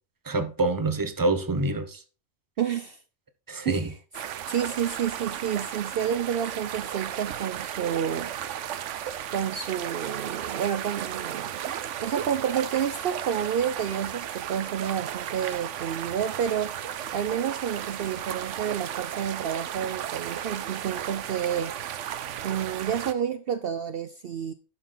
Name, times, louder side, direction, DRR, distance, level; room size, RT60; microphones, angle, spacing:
voice 1, 0.2-2.0 3.5-3.9, right 2 dB, 20° right, 0.9 m, -26 dB
voice 2, 2.6-3.0 3.7-4.0 4.5-8.3 9.3-11.7 12.0-16.7 17.1-21.8 22.4-24.5, right 8 dB, 60° right, 0.8 m, -29 dB
sound 1, 4.1-23.1, right 10 dB, 85° right, 1.0 m, -35 dB
11.5 x 6.1 x 3.9 m
omnidirectional pair, 1.2 m